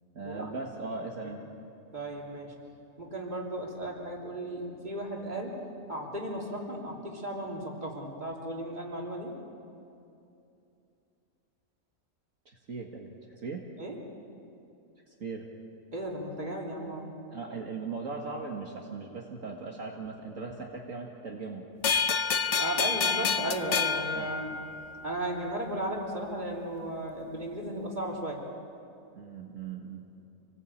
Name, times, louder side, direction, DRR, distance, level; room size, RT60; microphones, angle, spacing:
voice 1, 0.2-1.4 12.5-13.7 15.1-15.5 17.3-21.6 24.1-24.3 29.2-30.3, right 4 dB, 60° right, 0 dB, 2.1 m, -39 dB
voice 2, 1.9-2.6 3.0-5.6 5.9-9.3 13.8-14.0 15.9-17.1 22.6-24.6 25.0-28.4, right 1 dB, 30° right, -1 dB, 3.5 m, -35 dB
sound 1, 21.8-25.1, left 6 dB, 55° left, 1.1 m, -28 dB
27.5 x 19.5 x 8.6 m, 2.7 s
omnidirectional pair, 1.5 m